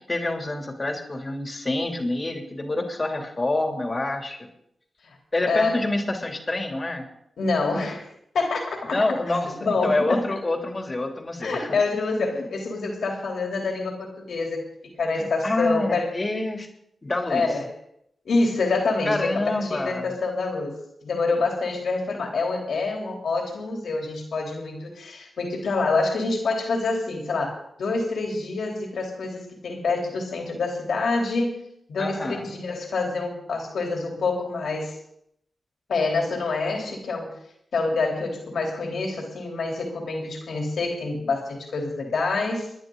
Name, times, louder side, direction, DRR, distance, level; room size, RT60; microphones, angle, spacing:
voice 1, 0.1-4.4 5.3-7.1 8.9-11.7 15.2-16.7 17.0-17.5 19.0-20.1 32.0-32.5, left 2 dB, 35° left, 3 dB, 3.1 m, -27 dB
voice 2, 5.5-5.9 7.4-8.1 8.3-9.0 9.5-10.2 11.4-16.1 17.3-17.7 18.2-31.6 31.9-35.0 35.9-37.3 37.7-42.7, left 3 dB, 80° left, 1 dB, 3.5 m, -26 dB
29.0 x 10.5 x 4.0 m, 0.75 s
cardioid pair, 45°, 0 cm